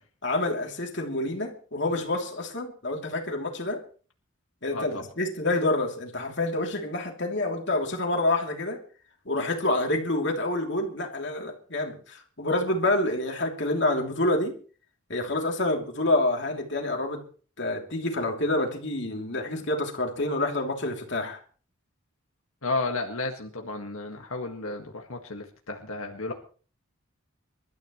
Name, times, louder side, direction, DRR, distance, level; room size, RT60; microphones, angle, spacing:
voice 1, 0.2-3.8 4.6-8.8 9.2-14.6 15.1-17.3 17.6-21.4, left 2 dB, 55° left, 3.0 m, -27 dB
voice 2, 4.7-5.0 22.6-26.3, left 3 dB, 90° left, 1.8 m, -32 dB
27.0 x 13.0 x 3.1 m
head